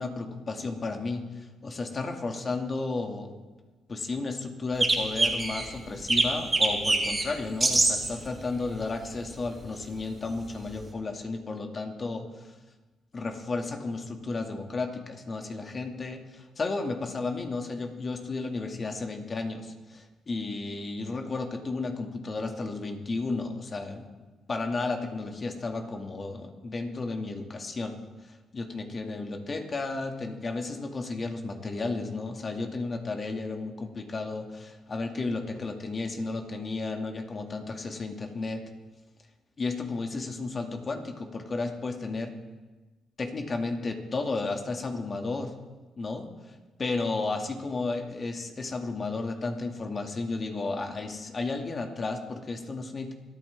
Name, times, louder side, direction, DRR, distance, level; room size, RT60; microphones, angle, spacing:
voice 1, 0.0-3.4 3.9-12.5 13.1-24.1 24.5-38.6 39.6-42.4 43.2-45.5 46.0-53.1, left 3 dB, 40° left, 3 dB, 2.2 m, -33 dB
sound 1, 4.8-5.7 6.1-7.2 7.6-8.1 9.4-9.5 10.8-10.9, right 2 dB, 25° right, 3.5 m, -24 dB
26.0 x 9.3 x 3.6 m, 1.2 s
supercardioid pair, 60°, 0 cm